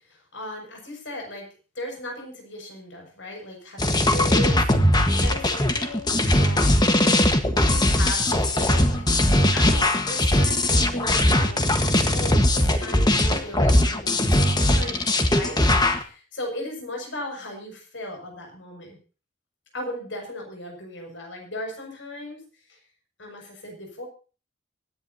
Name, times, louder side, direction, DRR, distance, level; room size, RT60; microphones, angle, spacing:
voice 1, 0.1-1.5 1.8-9.1 9.5-19.0 19.7-22.4 23.2-24.0, left 1 dB, 70° left, 2 dB, 6.9 m, -37 dB
sound 1, 3.8-16.0, left 1 dB, 20° left, 1.5 m, -20 dB
25.0 x 10.5 x 2.9 m, 0.35 s
head